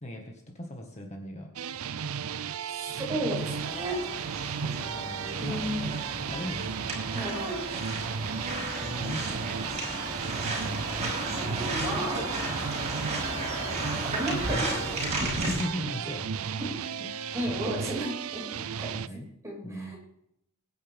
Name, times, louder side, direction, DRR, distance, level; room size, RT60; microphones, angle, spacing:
voice 1, 0.0-1.5 4.6-5.9 6.3-7.0 8.4-9.8 15.4-16.4 17.0-17.1 18.9-19.3 19.6-19.9, equal, 35° left, 1 dB, 1.8 m, -38 dB
sound 1, 1.6-19.1, right 7 dB, 85° right, 0.6 m, -35 dB
voice 2, 2.7-4.0 5.4-6.0 7.1-7.6 11.3-12.5 14.0-14.8 16.5-16.7 17.3-18.4 18.8-18.9 19.4-20.0, right 1 dB, 15° right, -3 dB, 6.3 m, -33 dB
sound 2, 3.4-15.6, right 1 dB, 30° right, 5.9 m, -34 dB
23.5 x 9.9 x 3.7 m, 0.76 s
head